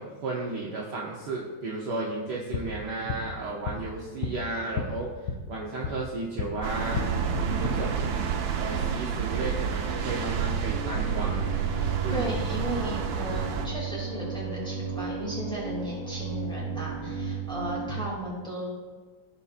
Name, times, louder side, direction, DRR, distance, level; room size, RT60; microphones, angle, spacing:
voice 1, 0.0-7.0 7.6-8.1 8.6-11.5 12.0-12.4, right 2 dB, 60° right, -3 dB, 1.4 m, -34 dB
sound 1, 2.3-6.5 6.9-7.7, left 5 dB, 70° left, 1.4 m, -35 dB
sound 2, 6.6-13.7, right 6 dB, 90° right, 1.7 m, -29 dB
sound 3, 6.8-18.1, right 5 dB, 35° right, 1.1 m, -35 dB
voice 2, 12.1-18.7, equal, ahead, -5 dB, 2.4 m, -35 dB
15.0 x 5.6 x 2.5 m, 1.4 s
omnidirectional pair, 2.4 m